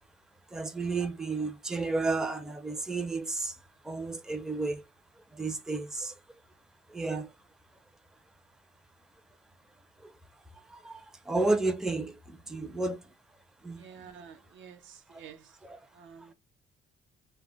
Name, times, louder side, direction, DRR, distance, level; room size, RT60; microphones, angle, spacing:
voice 1, 0.5-3.5 3.8-4.8 5.3-6.1 6.9-7.3 10.0-10.1 10.7-13.0 13.6-14.1 15.1-15.2 15.6-15.8, right 3 dB, 5° right, 0.4 m, -32 dB
voice 2, 13.8-15.6 15.9-16.3, right 7 dB, 75° right, 0.5 m, -50 dB
2.1 x 2.1 x 3.8 m
cardioid pair, 90°, 20 cm